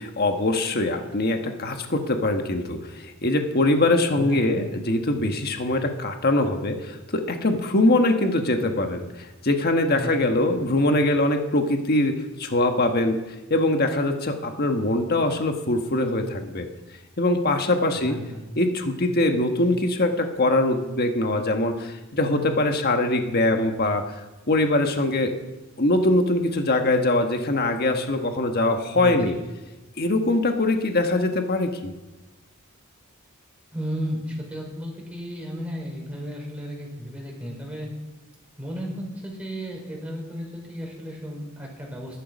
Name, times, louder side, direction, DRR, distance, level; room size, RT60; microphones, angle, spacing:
voice 1, 0.0-16.7 17.2-18.2 18.6-25.3 25.8-29.3 30.0-31.9, left 2 dB, 45° left, 5 dB, 1.4 m, -23 dB
voice 2, 4.2-4.6 9.9-10.1 18.0-18.4 28.9-29.4 33.7-37.9 38.6-42.2, equal, 5° right, -2 dB, 4.9 m, -34 dB
21.0 x 11.5 x 5.3 m, 1.1 s
head